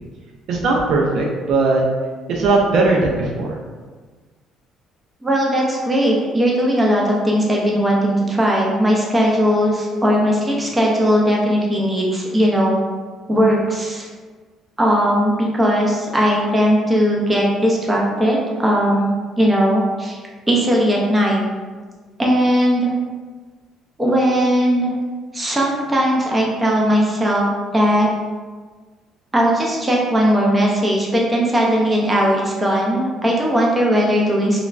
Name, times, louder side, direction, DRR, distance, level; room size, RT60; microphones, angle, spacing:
voice 1, 0.5-1.8 2.3-3.6, right 3 dB, 65° right, 0 dB, 0.4 m, -18 dB
voice 2, 5.2-12.8 13.3-14.1 14.8-20.2 20.5-21.4 22.2-22.9 24.0-24.9 25.3-28.1 29.3-34.6, equal, 15° right, -3 dB, 0.5 m, -18 dB
2.9 x 2.2 x 2.4 m, 1.4 s
cardioid pair, 120°, 0 cm